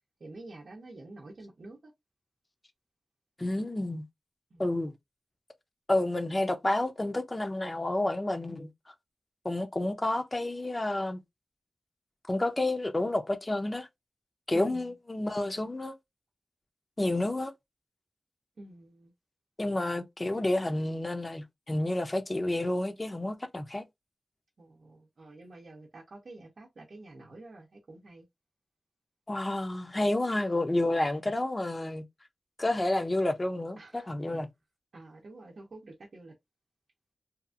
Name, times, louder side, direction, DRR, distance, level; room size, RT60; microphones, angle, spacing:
voice 1, 0.2-1.9 4.5-4.6 14.5-14.9 18.6-19.1 24.6-28.2 33.8-34.1 34.9-36.3, right 2 dB, 75° right, 0.6 m, -48 dB
voice 2, 3.4-4.0 4.6-4.9 5.9-8.7 9.4-11.2 12.3-13.9 14.5-15.9 17.0-17.5 19.6-23.8 29.3-32.0 32.6-34.5, left 1 dB, 30° left, 0.6 m, -30 dB
2.8 x 2.4 x 2.4 m
wide cardioid pair, 70°, 0 cm